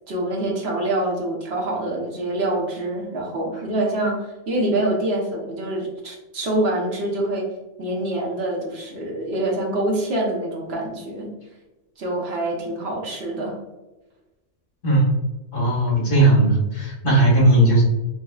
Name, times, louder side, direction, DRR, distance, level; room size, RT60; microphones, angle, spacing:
voice 1, 0.1-7.5 7.8-11.3 12.0-13.6, right 1 dB, 60° right, -2 dB, 1.2 m, -25 dB
voice 2, 15.5-17.8, right 2 dB, 85° left, -4 dB, 1.7 m, -17 dB
5.7 x 2.2 x 2.3 m, 1.1 s
omnidirectional pair, 1.2 m